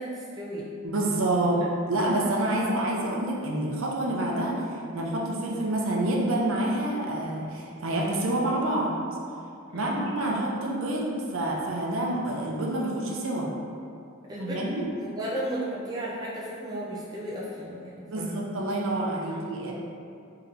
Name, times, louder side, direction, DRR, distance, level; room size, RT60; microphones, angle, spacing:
voice 1, 0.0-0.8 1.3-1.5 2.5-2.8 9.7-10.1 14.3-18.4 19.3-19.4, right 1 dB, 20° right, -6 dB, 0.4 m, -35 dB
voice 2, 0.8-1.6 1.9-8.9 9.7-13.5 14.4-14.8 18.1-19.7, right 1 dB, 65° right, -2 dB, 0.6 m, -28 dB
3.3 x 2.8 x 3.7 m, 2.5 s
head